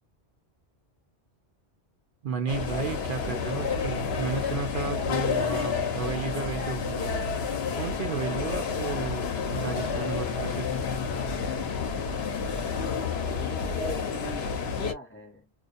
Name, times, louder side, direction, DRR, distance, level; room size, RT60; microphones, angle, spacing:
voice 1, 2.2-7.1 7.8-10.8, right 5 dB, 60° right, 0.6 m, -33 dB
sound 1, 2.5-14.9, left 5 dB, 70° left, 0.9 m, -30 dB
voice 2, 12.6-15.5, left 1 dB, 15° left, 0.5 m, -44 dB
2.4 x 2.1 x 2.4 m
omnidirectional pair, 1.1 m